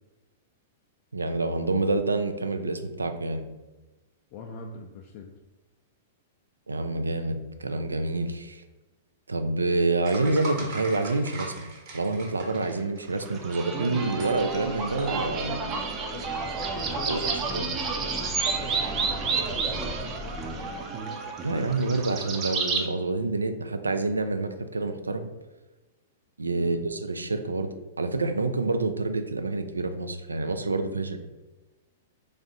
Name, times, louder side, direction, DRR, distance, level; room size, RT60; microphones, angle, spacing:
voice 1, 1.1-3.5 6.7-8.6 9.3-15.6 17.1-17.7 21.4-25.3 26.4-27.7 28.0-31.2, right 3 dB, 85° right, 8 dB, 0.3 m, -27 dB
voice 2, 4.3-5.3 16.1-17.6 18.0-18.1 18.3-20.8 26.5-26.8, left 5 dB, 45° left, 1 dB, 0.4 m, -44 dB
sound 1, 10.0-13.3 14.2-14.3 15.0-15.3, right 2 dB, 45° right, 1.1 m, -38 dB
sound 2, 13.2-22.8, right 4 dB, 30° right, 0.5 m, -30 dB
3.3 x 2.5 x 3.9 m, 1.2 s
figure-of-eight pair, 105°, 0 cm